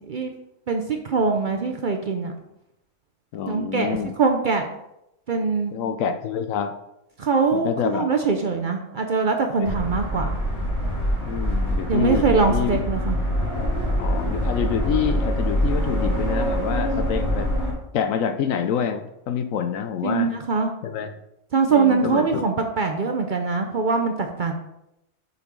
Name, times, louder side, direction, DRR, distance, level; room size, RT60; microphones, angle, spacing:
voice 1, 0.7-2.3 3.5-4.7 5.3-5.7 7.2-10.4 11.9-13.2 20.0-20.7 21.5-24.5, right 4 dB, 55° right, 4 dB, 0.6 m, -23 dB
voice 2, 3.3-4.1 5.7-6.7 7.5-8.1 9.6-9.7 11.2-12.8 14.0-17.5 17.9-20.3 20.8-21.1 21.7-22.4, left 7 dB, 75° left, 7 dB, 1.0 m, -27 dB
sound 1, 9.6-17.7, equal, 60° left, 3.1 m, -24 dB
6.9 x 4.0 x 4.6 m, 0.84 s
omnidirectional pair, 1.4 m